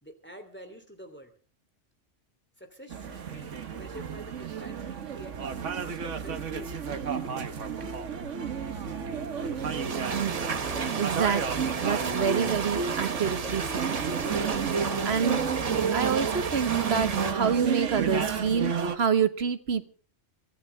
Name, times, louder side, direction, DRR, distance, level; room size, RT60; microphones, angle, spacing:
voice 1, 0.0-1.3 2.6-5.4 5.7-7.1, equal, 10° left, 6 dB, 3.0 m, -47 dB
sound 1, 2.9-19.0, right 6 dB, 80° right, 1.5 m, -31 dB
sound 2, 9.6-17.3, right 5 dB, 35° right, 0.9 m, -33 dB
voice 2, 10.9-14.0 15.0-15.4 15.9-19.9, right 6 dB, 60° right, 11 dB, 1.3 m, -27 dB
24.0 x 15.5 x 3.4 m, 0.41 s
omnidirectional pair, 1.2 m